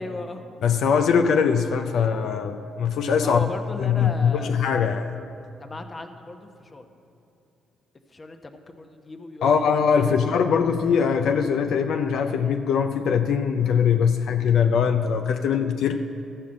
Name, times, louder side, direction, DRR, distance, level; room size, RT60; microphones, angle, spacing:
voice 1, 0.0-0.4 3.2-4.5 5.6-6.9 8.1-9.6 9.9-10.5 15.4-15.5, left 2 dB, 30° left, 6 dB, 0.9 m, -36 dB
voice 2, 0.6-3.5 3.8-5.1 9.4-16.1, left 6 dB, 75° left, 6 dB, 0.4 m, -22 dB
13.5 x 5.6 x 7.6 m, 2.6 s
cardioid pair, 90°, 0 cm